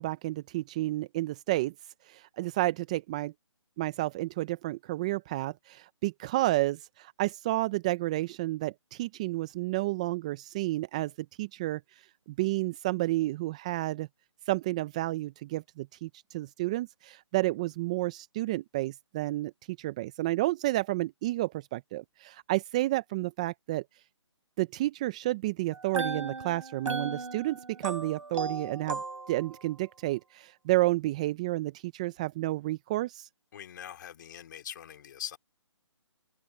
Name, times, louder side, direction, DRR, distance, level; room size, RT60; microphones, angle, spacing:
voice 1, 0.0-1.7 2.1-3.3 3.8-11.1 11.4-11.8 12.4-14.1 14.5-23.8 24.6-29.0 29.3-33.3, right 18 dB, 15° right, 0.4 m, -31 dB
sound 1, 25.7-29.7, right 3 dB, 90° right, 6.2 m, -36 dB
voice 2, 33.5-35.4, left 10 dB, 40° left, 3.3 m, -42 dB
open air
hypercardioid pair, 155°, 16 cm